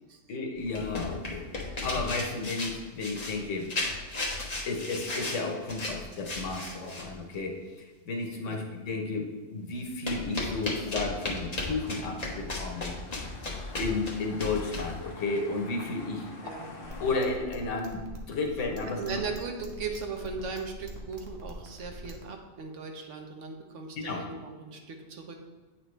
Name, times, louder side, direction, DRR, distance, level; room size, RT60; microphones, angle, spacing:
voice 1, 0.3-3.7 4.7-12.9 13.2-13.4 13.8-16.3 17.0-19.2 24.0-24.2, left 3 dB, 90° left, 2 dB, 1.2 m, -33 dB
sound 1, 0.6-7.1 10.1-14.9, left 2 dB, 35° left, 1.2 m, -35 dB
sound 2, 11.0-17.2, left 2 dB, 50° left, 1.1 m, -46 dB
sound 3, 16.8-22.2, right 1 dB, 60° right, 1.2 m, -44 dB
voice 2, 19.0-25.4, right 4 dB, 85° right, 4 dB, 1.2 m, -38 dB
8.5 x 5.9 x 3.2 m, 1.4 s
omnidirectional pair, 1.2 m